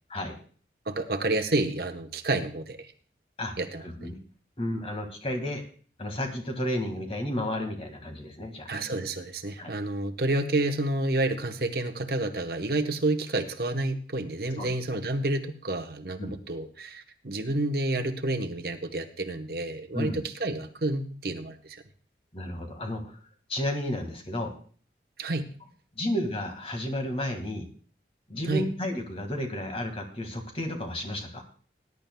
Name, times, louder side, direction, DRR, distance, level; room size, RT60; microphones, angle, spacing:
voice 1, 0.9-2.9 3.6-4.1 8.7-21.8 25.2-25.5 28.5-28.7, right 2 dB, 55° right, 5 dB, 1.0 m, -29 dB
voice 2, 3.8-4.2 4.6-5.6 6.0-8.7 9.6-9.7 14.6-14.7 16.2-16.4 19.9-20.2 22.3-23.2 23.5-24.5 25.9-27.7 28.3-31.4, left 1 dB, 35° left, 4 dB, 1.8 m, -32 dB
20.0 x 11.0 x 2.2 m, 0.43 s
head